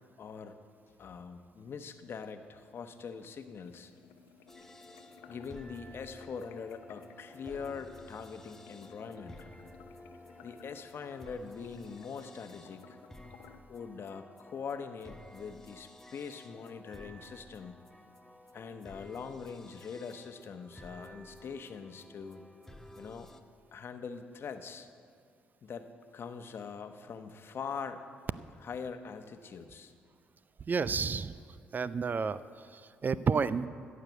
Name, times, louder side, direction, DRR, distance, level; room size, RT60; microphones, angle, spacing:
voice 1, 0.2-0.6 1.0-3.9 5.3-9.5 10.4-13.0 13.7-17.8 18.5-22.4 23.0-23.3 23.7-24.9 25.6-28.0 28.6-29.9, left 6 dB, 55° left, 8 dB, 0.9 m, -43 dB
sound 1, 3.6-13.6, left 7 dB, 85° left, 0.7 m, -57 dB
sound 2, 4.5-23.4, left 1 dB, 10° left, 1.0 m, -53 dB
voice 2, 30.7-31.4 31.7-33.7, right 5 dB, 40° right, 16 dB, 0.5 m, -31 dB
14.5 x 6.6 x 8.2 m, 2.2 s
supercardioid pair, 55°, 5 cm